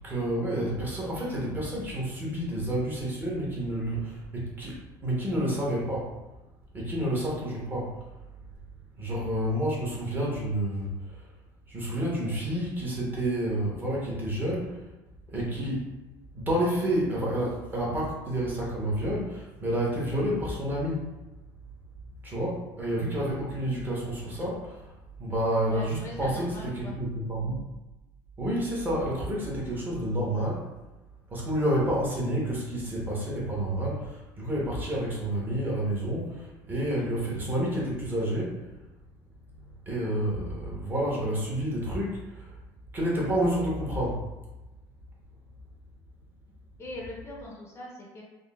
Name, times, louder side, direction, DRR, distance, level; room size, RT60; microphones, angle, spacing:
voice 1, 0.0-6.1 6.7-7.9 9.0-11.2 11.7-14.8 15.3-15.9 16.3-21.1 22.2-24.8 25.2-27.6 28.4-30.7 31.3-38.6 39.9-42.5 42.9-44.2, right 1 dB, 20° right, -5 dB, 0.9 m, -29 dB
voice 2, 25.7-26.9 46.8-48.2, left 1 dB, 30° left, -3 dB, 0.5 m, -41 dB
3.6 x 2.0 x 2.3 m, 1.0 s
cardioid pair, 135°, 9 cm